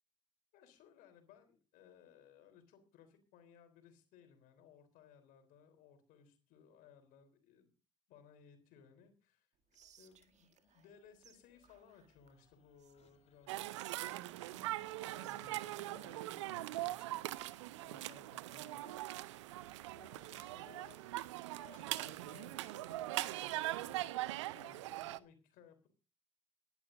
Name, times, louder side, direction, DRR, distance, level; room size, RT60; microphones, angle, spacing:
voice 1, 0.5-7.7 8.1-9.5 10.0-14.3 14.9-19.1 20.0-21.0 21.7-25.9, left 7 dB, 60° left, 7 dB, 3.6 m, -63 dB
sound 1, 9.6-24.1, left 6 dB, 45° left, 2.4 m, -69 dB
Whispering, 9.7-11.0 11.2-11.4 11.6-13.2 13.7-16.9, right 8 dB, 50° right, 1.6 m, -63 dB
sound 2, 13.5-25.2, right 16 dB, 75° right, 0.6 m, -41 dB
25.5 x 11.0 x 2.6 m, 0.33 s
figure-of-eight pair, 50°, 16 cm